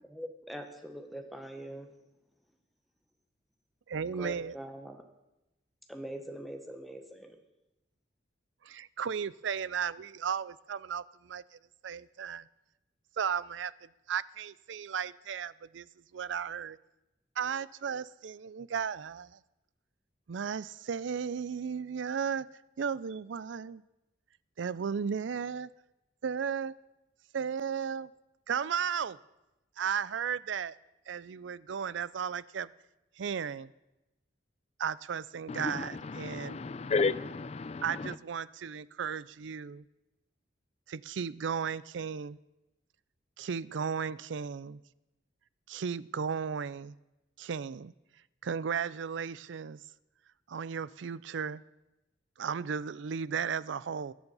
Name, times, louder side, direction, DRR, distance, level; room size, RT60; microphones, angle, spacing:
voice 1, 0.1-1.9 4.2-5.0 5.9-7.4, equal, ahead, 4 dB, 1.2 m, -43 dB
voice 2, 3.9-4.6 8.6-11.4 11.8-12.5 13.2-13.7 14.1-15.9 16.1-16.8 17.4-19.4 20.3-22.5 22.8-23.8 24.6-25.7 26.2-26.7 27.3-28.1 28.5-29.2 29.8-30.8 31.1-32.7 33.2-33.7 34.8-36.6 37.8-39.8 40.9-42.4 43.4-44.8 45.7-47.0 47.4-47.9 48.4-49.8 50.5-51.6 52.4-54.1, right 7 dB, 75° right, 19 dB, 0.4 m, -35 dB
voice 3, 35.5-38.1, left 4 dB, 35° left, 16 dB, 0.4 m, -33 dB
20.0 x 7.1 x 5.5 m, 0.96 s
head